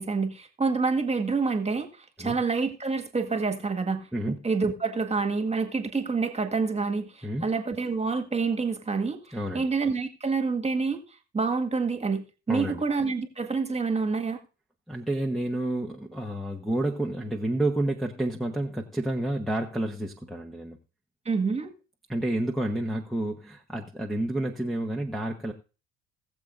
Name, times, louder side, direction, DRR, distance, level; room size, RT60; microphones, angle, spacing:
voice 1, 0.0-11.0 11.3-14.4 21.3-21.7, right 4 dB, 20° right, 7 dB, 1.8 m, -27 dB
voice 2, 9.3-9.7 12.5-12.8 14.9-20.8 22.1-25.5, right 1 dB, ahead, -1 dB, 1.2 m, -29 dB
20.5 x 7.2 x 2.6 m, 0.32 s
hypercardioid pair, 70°, 33 cm